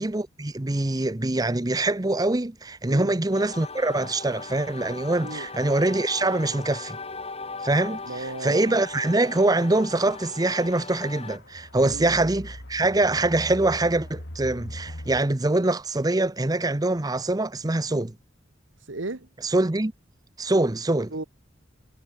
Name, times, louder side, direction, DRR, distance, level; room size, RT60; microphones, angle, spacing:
voice 1, 0.0-7.0 7.6-18.1 19.4-19.9 20.4-21.1, right 2 dB, 20° right, 0.7 m, -24 dB
sound 1, 3.3-11.4, left 4 dB, 30° left, 5.3 m, -39 dB
sound 2, 5.9-6.0 6.6-7.0 8.0-8.1 9.9-10.2 10.8-15.2, equal, 70° left, 4.6 m, -41 dB
voice 2, 7.9-8.8 11.8-12.1 18.8-19.3 21.1-21.2, right 2 dB, 85° right, 1.6 m, -35 dB
head